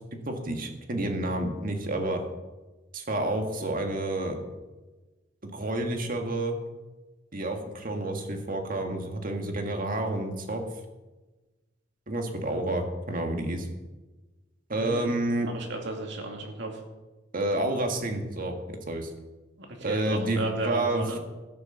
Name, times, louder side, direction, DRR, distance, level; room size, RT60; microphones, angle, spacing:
voice 1, 0.1-2.2 2.9-4.4 5.4-6.6 7.3-10.6 12.1-13.7 14.7-15.5 17.3-19.1 19.8-21.2, right 1 dB, 45° right, 4 dB, 1.8 m, -29 dB
voice 2, 14.7-15.2 15.5-16.8 19.6-21.2, right 2 dB, 65° right, 2 dB, 2.5 m, -34 dB
16.5 x 6.8 x 6.8 m, 1.2 s
head